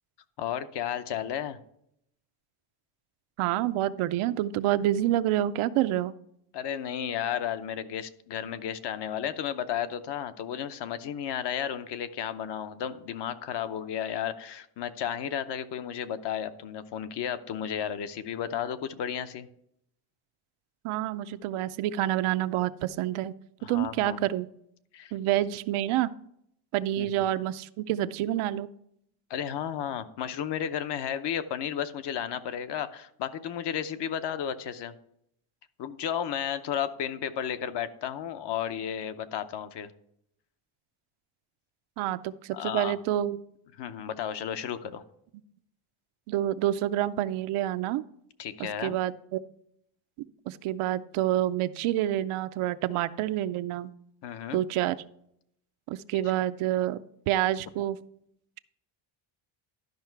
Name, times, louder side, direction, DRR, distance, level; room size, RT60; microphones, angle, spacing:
voice 1, 0.4-1.6 6.5-19.5 23.6-24.2 24.9-25.1 27.0-27.2 29.3-34.9 35.8-39.9 42.5-43.0 43.8-45.0 48.4-49.0 54.2-54.6, left 9 dB, 55° left, 11 dB, 0.8 m, -33 dB
voice 2, 3.4-6.1 20.8-23.3 23.7-24.5 25.1-26.1 26.7-28.7 42.0-43.4 46.3-48.0 48.6-49.4 50.5-53.9 54.5-55.0 55.9-57.0 57.3-58.0, right 13 dB, 75° right, 13 dB, 0.6 m, -28 dB
12.0 x 5.6 x 4.6 m, 0.73 s
cardioid pair, 150°, 50 cm